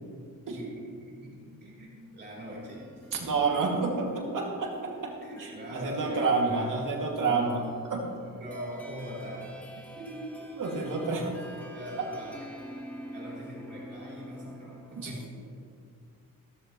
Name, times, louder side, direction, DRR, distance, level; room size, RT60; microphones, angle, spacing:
voice 1, 0.6-3.1 5.2-6.7 7.3-7.6 8.2-9.6 10.0-11.0 11.6-12.7 13.1-15.5, equal, 30° right, -6 dB, 3.5 m, -42 dB
sound 1, 2.3-15.3, equal, 5° left, 1.6 m, -47 dB
voice 2, 3.1-7.6 7.9-8.0 10.6-11.3 15.0-15.1, right 4 dB, 65° right, -1 dB, 2.3 m, -29 dB
15.5 x 13.0 x 3.1 m, 2.3 s
wide cardioid pair, 175°, 34 cm